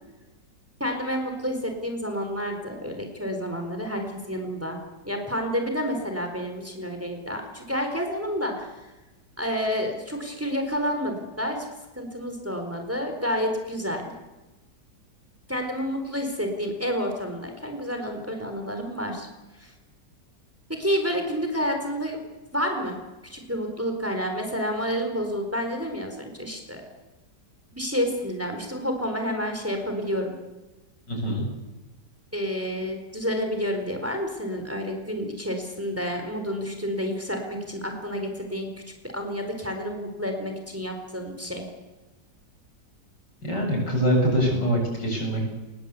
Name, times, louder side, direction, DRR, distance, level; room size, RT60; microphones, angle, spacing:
voice 1, 0.8-4.8 5.0-8.9 9.4-11.7 11.9-14.1 15.5-19.3 19.5-19.7 20.7-22.2 22.5-23.0 23.2-26.8 27.7-30.4 32.3-38.7 39.0-41.6 44.5-44.6, equal, 5° right, 4 dB, 4.1 m, -29 dB
voice 2, 31.1-31.5 43.4-45.5, equal, 75° left, 1 dB, 8.4 m, -24 dB
23.5 x 20.0 x 8.3 m, 1.1 s
omnidirectional pair, 1.9 m